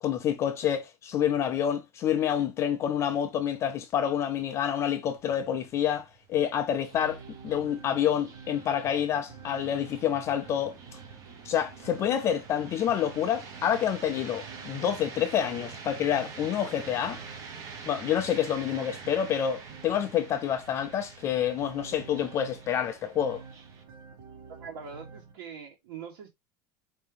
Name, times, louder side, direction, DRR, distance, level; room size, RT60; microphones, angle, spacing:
voice 1, 0.0-7.2 7.4-11.0 11.4-17.2 17.9-23.4, left 9 dB, 25° left, 0.3 m, -28 dB
sound 1, 5.1-23.8, right 5 dB, 30° right, 0.8 m, -46 dB
sound 2, 6.9-25.3, right 5 dB, 75° right, 1.5 m, -50 dB
voice 2, 24.5-26.3, right 6 dB, 90° right, 1.3 m, -43 dB
4.6 x 2.7 x 3.4 m
supercardioid pair, 175°, 12 cm